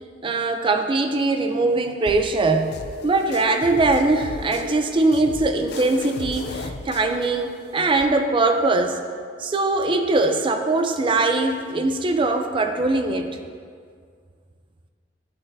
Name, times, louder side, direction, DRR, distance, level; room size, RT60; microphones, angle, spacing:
voice 1, 0.2-9.0 9.4-13.4, right 2 dB, 25° right, 6 dB, 0.4 m, -21 dB
sound 1, 1.6-8.1, right 1 dB, 35° left, 2.4 m, -42 dB
sound 2, 2.1-8.0, left 3 dB, 60° left, 0.5 m, -37 dB
12.0 x 8.0 x 2.6 m, 2.1 s
head